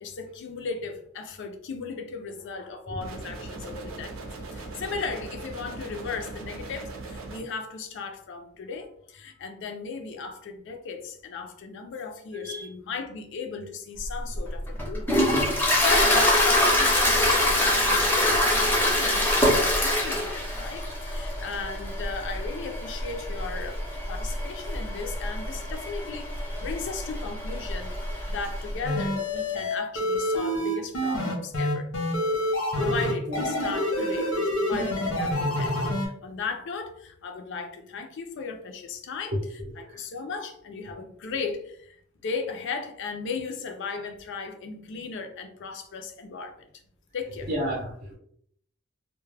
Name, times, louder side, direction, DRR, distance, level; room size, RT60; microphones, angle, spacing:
voice 1, 0.0-31.9 32.8-42.0 42.2-46.7 47.1-47.5, left 4 dB, 60° left, 5 dB, 0.4 m, -36 dB
sound 1, 3.0-7.4, right 3 dB, 85° right, 0.6 m, -39 dB
voice 2, 12.3-12.6 33.3-33.4 39.3-39.4 47.5-48.1, equal, 45° right, -3 dB, 0.6 m, -30 dB
Toilet flush, 14.0-28.8, left 1 dB, 10° left, 0.6 m, -25 dB
sound 2, 28.8-36.1, left 1 dB, 85° left, 0.8 m, -27 dB
2.2 x 2.1 x 3.2 m, 0.66 s
head